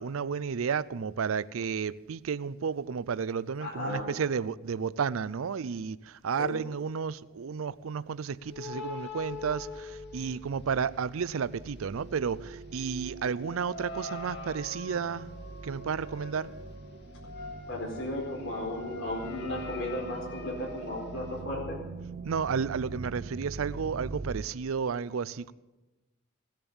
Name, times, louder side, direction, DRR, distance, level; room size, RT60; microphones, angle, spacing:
voice 1, 0.0-15.3 15.6-16.5 22.2-25.5, right 6 dB, 85° right, 0.5 m, -32 dB
voice 2, 3.6-4.1 6.3-6.6 17.7-21.8, left 1 dB, 70° left, 4.6 m, -35 dB
sound 1, 8.4-10.9 11.2-21.4, left 3 dB, 55° left, 2.2 m, -43 dB
sound 2, 9.2-24.4, right 3 dB, 50° right, 0.7 m, -44 dB
18.0 x 10.5 x 7.1 m
head